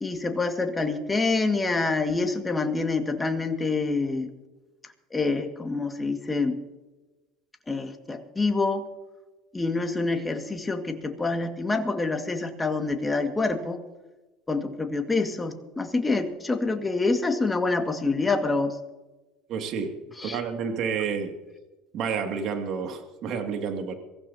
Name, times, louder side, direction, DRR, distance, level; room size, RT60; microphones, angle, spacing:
voice 1, 0.0-4.3 5.1-6.5 7.7-8.9 9.5-13.8 14.5-18.8 20.2-20.4, left 3 dB, 15° left, 5 dB, 1.9 m, -26 dB
voice 2, 19.5-19.9 20.2-21.3 21.9-23.9, right 6 dB, 60° right, 4 dB, 2.4 m, -29 dB
24.0 x 15.5 x 2.9 m, 1.1 s
supercardioid pair, 85°, 0 cm